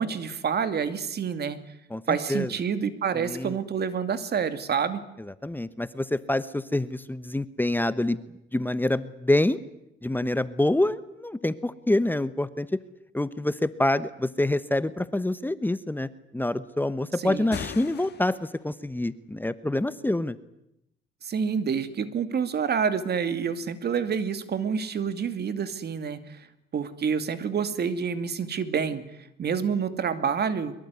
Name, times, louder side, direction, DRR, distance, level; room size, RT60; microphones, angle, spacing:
voice 1, 0.0-1.6 2.1-5.0 17.2-17.5 21.2-26.2 26.7-29.0 29.4-30.7, right 6 dB, 55° right, 11 dB, 2.5 m, -28 dB
voice 2, 1.9-2.5 3.1-3.6 5.2-9.6 10.0-12.8 13.1-20.4, left 1 dB, 10° left, 14 dB, 1.1 m, -27 dB
sound 1, 17.3-18.6, left 8 dB, 60° left, 1.8 m, -39 dB
23.0 x 22.5 x 9.7 m, 0.83 s
cardioid pair, 90°, 20 cm